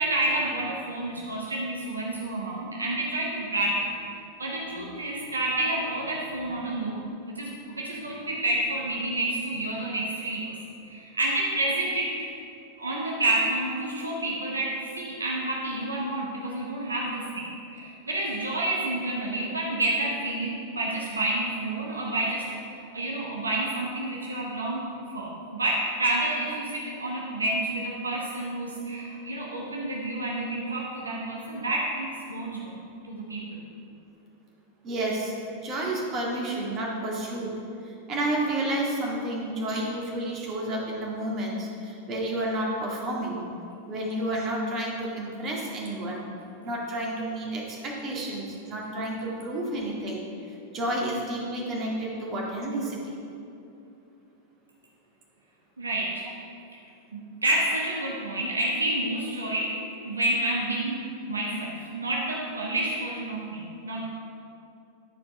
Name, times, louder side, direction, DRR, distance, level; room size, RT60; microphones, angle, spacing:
voice 1, 0.0-3.9 4.4-10.5 10.8-12.3 12.8-32.8 33.0-33.6 55.8-56.2 56.7-56.8 57.1-59.8 60.0-64.0, right 1 dB, 75° right, -3 dB, 1.1 m, -29 dB
voice 2, 34.8-37.5 37.8-43.4 43.9-46.2 46.6-53.2, right 1 dB, 35° right, -3 dB, 1.9 m, -31 dB
11.0 x 4.7 x 5.0 m, 2.7 s
figure-of-eight pair, 90°, 0 cm